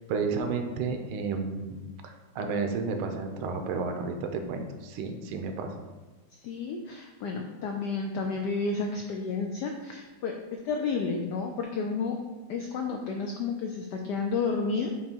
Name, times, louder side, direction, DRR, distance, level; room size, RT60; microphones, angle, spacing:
voice 1, 0.1-1.8 2.0-5.7, right 4 dB, 80° right, 5 dB, 1.5 m, -31 dB
voice 2, 6.4-12.2 12.5-14.9, left 4 dB, 85° left, 3 dB, 0.9 m, -31 dB
6.9 x 3.1 x 4.4 m, 1.2 s
omnidirectional pair, 2.4 m